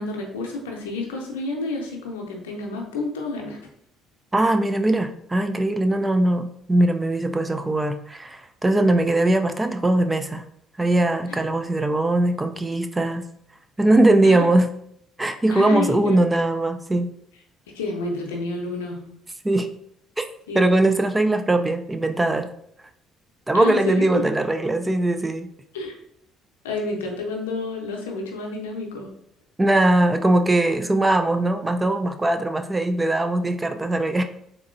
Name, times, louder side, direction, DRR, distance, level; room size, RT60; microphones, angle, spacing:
voice 1, 0.0-3.6 14.2-14.5 15.5-16.2 17.7-19.0 20.5-20.6 23.5-24.2 25.7-25.9 26.6-29.1, left 2 dB, 90° left, 0 dB, 0.6 m, -29 dB
voice 2, 4.3-10.4 10.8-13.2 13.8-14.7 15.2-17.1 19.4-19.7 20.2-20.3 20.5-22.5 23.5-25.5 29.6-34.2, right 2 dB, 20° right, 7 dB, 0.4 m, -20 dB
3.7 x 3.0 x 2.5 m, 0.71 s
hypercardioid pair, 55°, 0 cm